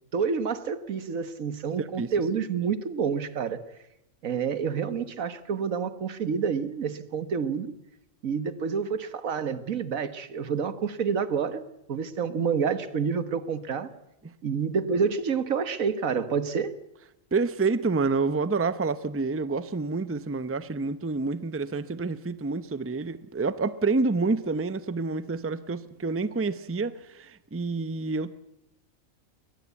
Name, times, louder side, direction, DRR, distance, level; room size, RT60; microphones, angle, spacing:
voice 1, 0.1-3.6 4.2-7.7 8.2-11.6 11.9-13.9 14.4-16.7, right 6 dB, 85° right, 1.7 m, -28 dB
voice 2, 1.8-2.1 14.2-14.3 17.3-28.3, right 3 dB, 15° right, 0.6 m, -28 dB
22.5 x 19.5 x 8.3 m
omnidirectional pair, 1.4 m